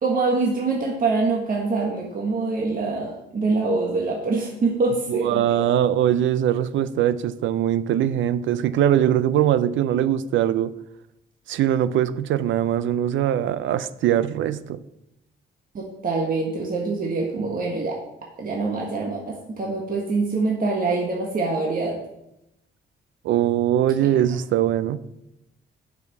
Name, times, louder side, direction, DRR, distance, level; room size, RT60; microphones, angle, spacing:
voice 1, 0.0-5.4 15.7-17.9 18.4-22.0, right 3 dB, 45° right, -1 dB, 1.6 m, -24 dB
voice 2, 5.1-10.7 11.5-14.8 23.2-25.0, right 11 dB, 75° right, 15 dB, 0.5 m, -21 dB
7.4 x 6.0 x 5.9 m, 0.86 s
cardioid pair, 90°, 20 cm